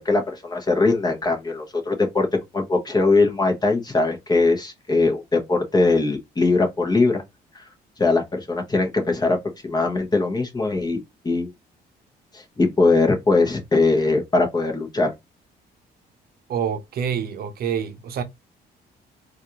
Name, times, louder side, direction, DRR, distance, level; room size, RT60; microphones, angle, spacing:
voice 1, 0.0-2.3 2.5-7.2 7.5-7.7 8.0-9.4 9.6-11.0 11.2-11.5 12.3-15.1, left 3 dB, 25° left, 1.1 m, -21 dB
voice 2, 16.5-18.2, right 8 dB, 65° right, 0.7 m, -27 dB
4.1 x 2.5 x 2.9 m
cardioid pair, 95°, 18 cm